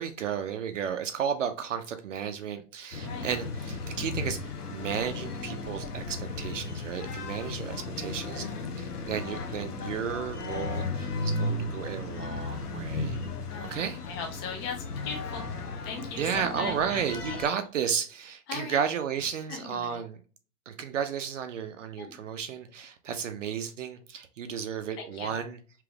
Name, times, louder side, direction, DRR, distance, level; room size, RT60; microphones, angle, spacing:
voice 1, 0.0-8.5 8.8-13.2 13.7-14.0 16.2-20.2 20.7-25.6, right 7 dB, 55° right, 0.5 m, -33 dB
sound 1, 2.9-17.5, left 3 dB, 85° left, 0.8 m, -35 dB
voice 2, 8.4-8.7 13.5-13.8 14.0-15.5 15.8-17.4 18.5-18.8 19.3-20.0 22.0-22.2 25.0-25.4, left 4 dB, 20° left, 0.5 m, -39 dB
3.3 x 3.0 x 2.2 m
figure-of-eight pair, 120°, 45 cm